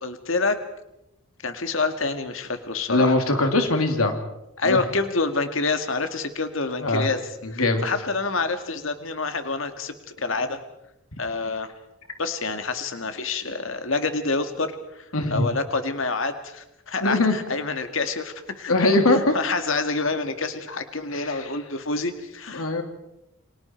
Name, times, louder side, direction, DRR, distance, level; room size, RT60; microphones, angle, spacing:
voice 1, 0.0-0.6 1.4-3.2 4.6-7.2 7.5-10.6 11.2-11.7 12.2-19.0 19.3-22.8, left 3 dB, 65° left, 8 dB, 2.0 m, -27 dB
voice 2, 2.9-4.2 4.6-4.8 6.8-7.0 7.4-7.9 15.1-15.5 17.0-17.3 18.7-19.3 21.1-21.5 22.5-22.8, left 2 dB, 90° left, 5 dB, 2.9 m, -21 dB
29.5 x 26.0 x 4.6 m, 0.89 s
head